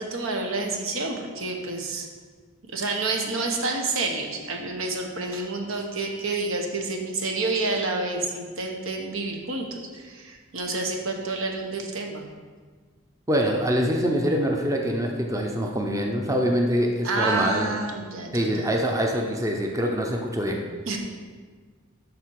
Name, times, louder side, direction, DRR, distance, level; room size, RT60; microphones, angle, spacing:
voice 1, 0.0-2.1 2.7-12.3 17.0-18.7 20.9-21.0, right 3 dB, 70° right, 2 dB, 1.2 m, -29 dB
voice 2, 13.3-17.8 18.3-20.6, equal, 15° right, 1 dB, 0.7 m, -24 dB
12.5 x 4.4 x 4.7 m, 1.5 s
head